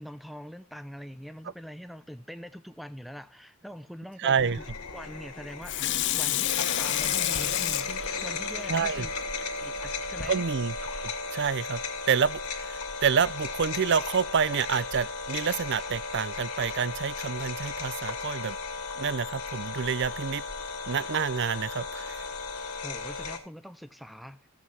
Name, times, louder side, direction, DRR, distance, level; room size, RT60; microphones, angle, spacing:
voice 1, 0.0-4.6 4.9-9.1 9.6-10.5 22.8-24.5, equal, ahead, 0.6 m, -43 dB
voice 2, 4.2-4.6 8.7-9.1 10.3-10.8 11.0-11.8 12.1-18.6 19.0-20.4 20.9-22.3, right 6 dB, 50° right, 0.5 m, -28 dB
sound 1, 4.4-23.4, left 4 dB, 90° left, 2.4 m, -35 dB
Water tap faucet / Sink (filling or washing), 5.6-9.4 9.9-10.0, left 13 dB, 55° left, 0.6 m, -30 dB
15.5 x 7.8 x 4.8 m
head